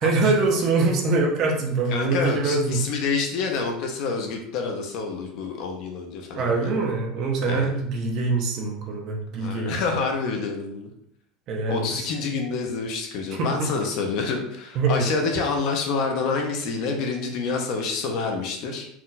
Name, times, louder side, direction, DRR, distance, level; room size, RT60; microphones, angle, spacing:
voice 1, 0.0-2.8 6.3-9.8 11.5-12.1 13.3-13.9 14.7-15.1, right 3 dB, 35° right, 1 dB, 0.8 m, -24 dB
voice 2, 1.9-6.7 7.5-7.7 9.3-10.9 11.7-18.9, left 4 dB, 45° left, 2 dB, 0.8 m, -27 dB
4.5 x 2.5 x 4.0 m, 0.71 s
cardioid pair, 180°, 0 cm